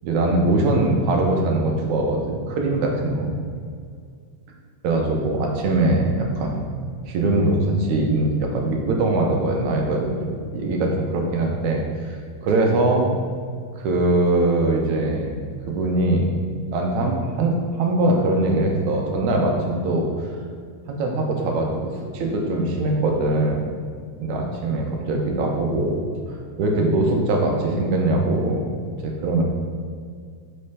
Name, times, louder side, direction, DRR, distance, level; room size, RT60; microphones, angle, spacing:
voice 1, 0.0-3.3 4.8-6.6 7.1-12.2 12.4-13.1 13.8-15.4 15.7-16.3 16.7-20.1 20.9-23.6 24.2-26.0 26.6-28.7 29.0-29.4, right 2 dB, 85° right, 1 dB, 2.2 m, -22 dB
5.5 x 3.3 x 5.4 m, 2.1 s
omnidirectional pair, 3.3 m